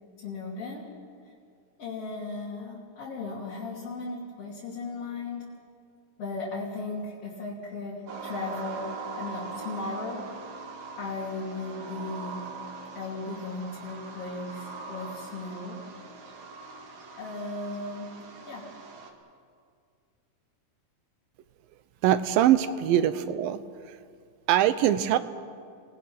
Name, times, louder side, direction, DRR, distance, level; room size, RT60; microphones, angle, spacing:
voice 1, 0.2-0.9 1.8-5.5 6.2-10.6 10.9-12.5 13.0-15.8 17.2-18.1 18.4-18.7, left 3 dB, 45° left, -6 dB, 3.6 m, -36 dB
sound 1, 8.1-19.1, right 4 dB, 60° right, 3.0 m, -41 dB
voice 2, 22.0-24.0 24.5-25.2, right 11 dB, 85° right, 12 dB, 2.6 m, -23 dB
29.0 x 19.0 x 6.0 m, 2.2 s
omnidirectional pair, 4.0 m